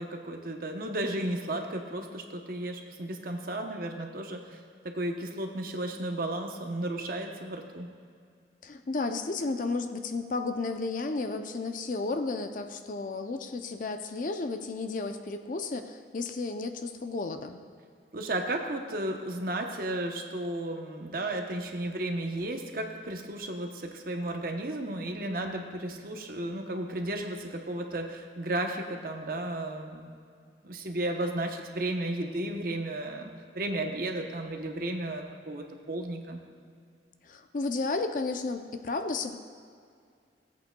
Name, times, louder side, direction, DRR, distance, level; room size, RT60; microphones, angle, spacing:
voice 1, 0.0-4.6 4.8-7.9 18.1-30.1 30.6-36.4, right 1 dB, 55° right, 3 dB, 0.9 m, -34 dB
voice 2, 8.6-17.6 37.2-39.4, left 3 dB, 50° left, 7 dB, 0.5 m, -33 dB
17.0 x 8.3 x 2.3 m, 2.2 s
head